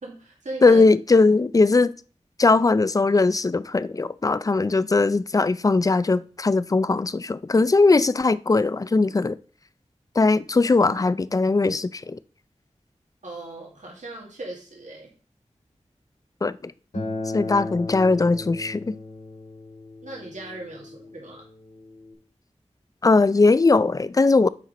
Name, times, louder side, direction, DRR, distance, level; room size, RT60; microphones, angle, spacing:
voice 1, 0.0-0.8 13.2-15.1 20.0-21.5, right 2 dB, 85° right, 2.0 m, -38 dB
voice 2, 0.6-1.9 2.4-9.4 10.2-12.2 16.4-16.7 17.3-18.9 23.0-24.5, left 3 dB, 30° left, 0.4 m, -19 dB
Acoustic guitar, 16.9-22.1, left 2 dB, 80° left, 2.6 m, -35 dB
7.3 x 4.3 x 5.0 m
wide cardioid pair, 55°, 12 cm